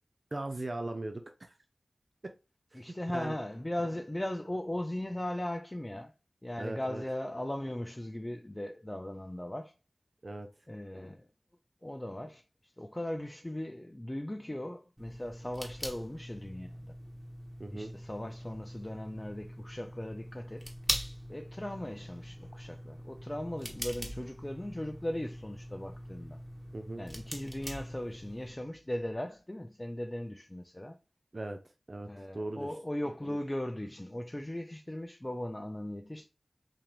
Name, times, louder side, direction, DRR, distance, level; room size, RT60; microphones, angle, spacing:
voice 1, 0.3-1.5 2.2-2.3 2.7-2.8 3.1-3.3 6.6-7.0 10.2-10.5 17.6-17.9 26.7-27.0 31.3-31.6 31.9-32.7, right 2 dB, 50° right, 0.5 m, -38 dB
voice 2, 2.7-6.1 6.4-9.7 10.7-11.3 11.8-16.9 17.7-20.7 21.3-26.4 27.0-31.0 32.1-36.3, left 1 dB, 20° left, 0.4 m, -38 dB
sound 1, 15.0-28.5, equal, 5° right, 1.3 m, -42 dB
3.8 x 2.9 x 3.1 m
cardioid pair, 45°, 0 cm